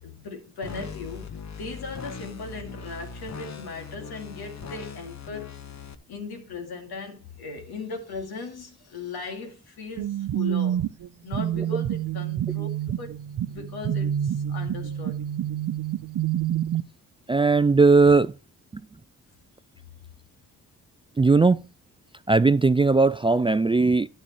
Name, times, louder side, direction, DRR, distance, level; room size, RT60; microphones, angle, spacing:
voice 1, 0.0-5.5 6.1-10.8 11.2-13.1 13.5-15.2, left 4 dB, 75° left, 2.5 m, -38 dB
sound 1, 0.6-6.0, left 5 dB, 45° left, 1.2 m, -40 dB
sound 2, 10.0-16.8, right 10 dB, 55° right, 0.7 m, -28 dB
voice 2, 17.3-18.3 21.2-21.6 22.3-24.1, right 3 dB, 15° right, 0.3 m, -18 dB
10.0 x 8.9 x 3.1 m
supercardioid pair, 45°, 38 cm